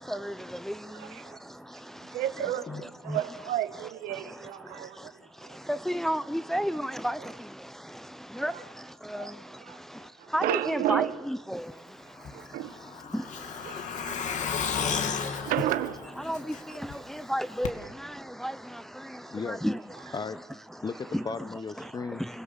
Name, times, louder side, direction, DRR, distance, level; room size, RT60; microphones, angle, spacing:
voice 1, 0.9-1.4 2.0-5.1 5.4-5.6 8.5-8.6 9.1-9.3 9.6-9.8 10.2-11.2 12.3-12.8 13.6-14.9 15.2-16.3 16.7-16.8 19.1-19.2, right 13 dB, 80° right, 1.4 m, -33 dB
voice 2, 5.9-7.2 8.4-8.5 9.1-9.2 10.3-11.6 16.3-16.4 17.3-17.7 18.4-18.5 19.6-19.8 21.1-21.2, equal, ahead, 0.7 m, -29 dB
Truck, 12.2-16.9 17.2-17.3 17.6-17.7, left 6 dB, 55° left, 2.4 m, -33 dB
voice 3, 19.3-19.6 20.1-20.4 20.8-22.3, left 4 dB, 30° left, 1.2 m, -35 dB
30.0 x 17.0 x 7.3 m
cardioid pair, 90°, 15 cm